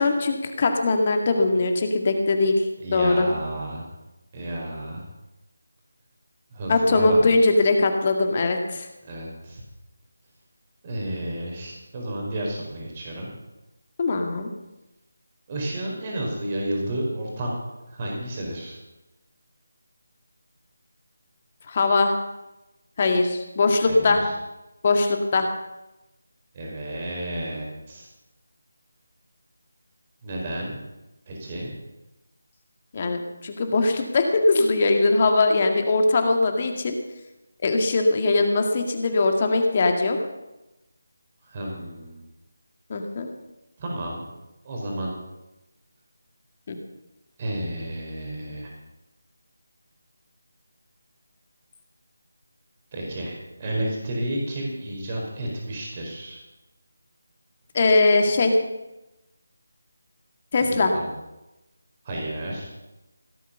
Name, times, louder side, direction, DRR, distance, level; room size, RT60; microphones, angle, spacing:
voice 1, 0.0-2.7 2.9-3.3 6.7-8.9 14.0-14.5 21.7-22.2 23.0-24.2 24.8-25.5 32.9-37.0 37.6-40.2 42.9-43.3 46.7-46.8 57.7-58.5 60.5-60.9, left 3 dB, 35° left, 5 dB, 2.0 m, -21 dB
voice 2, 2.8-3.8 4.3-5.0 6.5-7.3 9.0-9.6 10.8-13.3 15.5-17.5 17.9-18.8 23.8-24.3 26.5-28.1 30.2-30.8 31.3-31.7 41.4-42.2 43.8-44.3 44.6-45.1 47.4-48.7 52.9-56.4 60.6-61.1 62.0-62.7, right 1 dB, 30° right, -1 dB, 4.6 m, -31 dB
17.0 x 8.6 x 6.8 m, 0.99 s
figure-of-eight pair, 165°, 0 cm